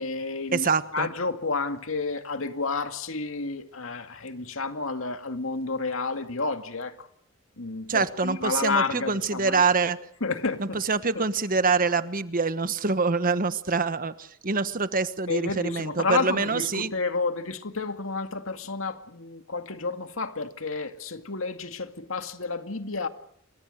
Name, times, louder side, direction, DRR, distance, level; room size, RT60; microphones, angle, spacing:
voice 1, 0.0-7.1 7.6-9.6 10.2-10.8 11.2-11.3 15.3-23.1, left 4 dB, 80° left, 2.2 m, -30 dB
voice 2, 0.5-1.1 7.9-10.0 10.6-16.9, right 4 dB, 45° right, 1.3 m, -25 dB
29.0 x 23.0 x 6.6 m
head